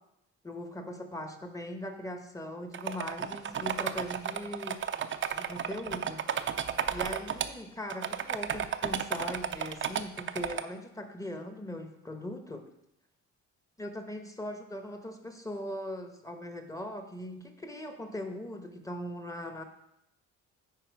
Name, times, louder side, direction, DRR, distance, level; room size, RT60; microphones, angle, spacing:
voice 1, 0.4-4.8 5.3-6.3 6.9-12.7 13.8-19.6, left 1 dB, 10° left, 6 dB, 1.0 m, -40 dB
sound 1, 2.7-7.5 7.9-10.6, right 8 dB, 40° right, 0.5 m, -33 dB
9.4 x 4.4 x 4.6 m, 0.82 s
cardioid pair, 90°, 30 cm